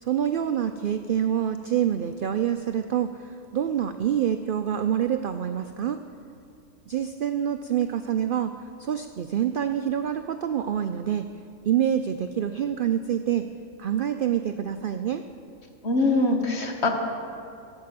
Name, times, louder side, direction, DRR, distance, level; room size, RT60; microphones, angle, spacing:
voice 1, 0.0-6.0 6.9-11.2 11.6-13.4 13.8-15.2, right 9 dB, 75° right, 8 dB, 0.4 m, -26 dB
voice 2, 15.8-16.9, left 2 dB, 50° left, 3 dB, 1.5 m, -23 dB
13.5 x 8.1 x 7.6 m, 2.5 s
omnidirectional pair, 1.4 m